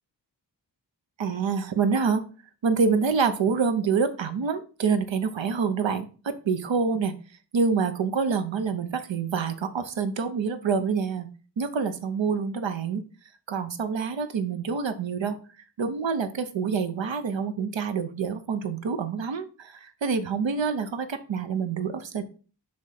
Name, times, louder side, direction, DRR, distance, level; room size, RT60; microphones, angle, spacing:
voice 1, 1.2-2.2 2.6-6.1 6.4-7.1 7.5-11.3 11.6-13.0 13.5-15.4 15.8-22.2, right 5 dB, 85° right, 9 dB, 0.9 m, -26 dB
6.1 x 3.7 x 5.8 m, 0.37 s
cardioid pair, 55°, 44 cm